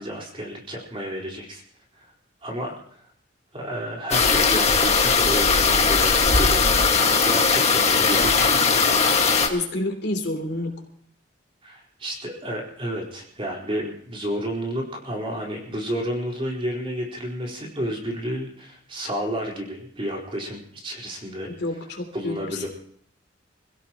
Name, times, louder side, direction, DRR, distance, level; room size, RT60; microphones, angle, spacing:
voice 1, 0.0-1.6 1.9-2.1 2.4-2.7 3.5-8.7 11.6-21.5 22.1-22.7, equal, 30° right, -2 dB, 4.3 m, -31 dB
sound 1, 4.1-9.5, left 5 dB, 35° left, 1.8 m, -19 dB
voice 2, 9.5-10.7 21.5-22.7, left 2 dB, 60° left, 3 dB, 3.2 m, -29 dB
27.0 x 16.5 x 3.0 m, 0.62 s
head